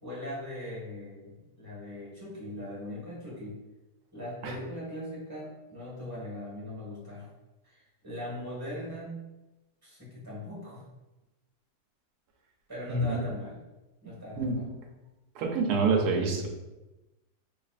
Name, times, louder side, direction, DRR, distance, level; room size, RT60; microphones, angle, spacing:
voice 1, 0.0-3.6 4.1-7.3 7.6-9.2 9.8-10.9 12.7-13.6 14.0-14.6, left 1 dB, 15° right, -7 dB, 1.4 m, -40 dB
voice 2, 12.9-13.2 14.4-14.6 15.3-16.5, right 4 dB, 75° right, 2 dB, 1.2 m, -27 dB
3.9 x 3.2 x 2.4 m, 1.0 s
omnidirectional pair, 1.7 m